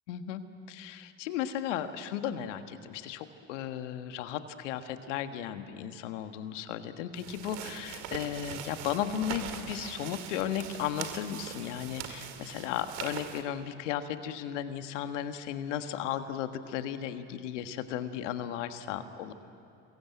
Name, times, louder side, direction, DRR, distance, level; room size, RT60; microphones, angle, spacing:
voice 1, 0.1-0.4 0.7-19.3, left 10 dB, 80° left, 9 dB, 1.6 m, -35 dB
sound 1, 7.1-13.4, right 9 dB, 75° right, 2.4 m, -42 dB
27.5 x 22.0 x 9.3 m, 2.7 s
hypercardioid pair, 60°, 36 cm